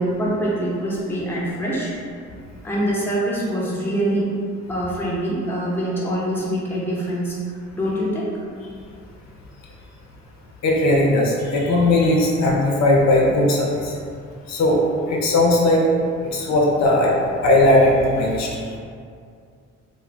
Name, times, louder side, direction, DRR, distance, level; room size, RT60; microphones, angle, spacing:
voice 1, 0.0-1.9 2.6-4.3 4.7-7.4 7.7-8.3 16.5-16.6, right 1 dB, 5° left, -6 dB, 0.6 m, -24 dB
voice 2, 10.6-13.9 14.5-14.8 15.1-15.8 16.3-17.1 17.4-18.5, left 1 dB, 65° left, -3 dB, 0.5 m, -17 dB
2.4 x 2.1 x 3.1 m, 2.3 s
cardioid pair, 90°, 30 cm